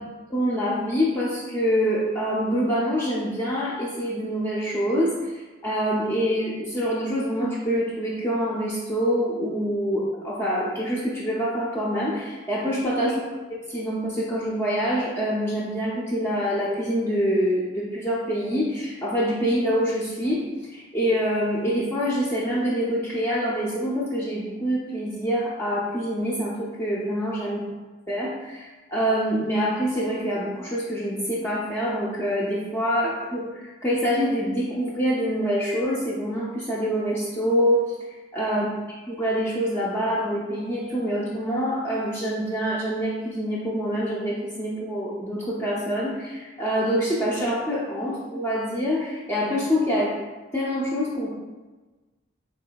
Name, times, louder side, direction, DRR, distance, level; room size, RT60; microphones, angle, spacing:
voice 1, 0.3-13.2 13.7-27.6 28.1-38.0 38.3-50.2 50.5-51.3, equal, 10° left, -6 dB, 0.4 m, -25 dB
3.9 x 3.6 x 2.2 m, 1.2 s
head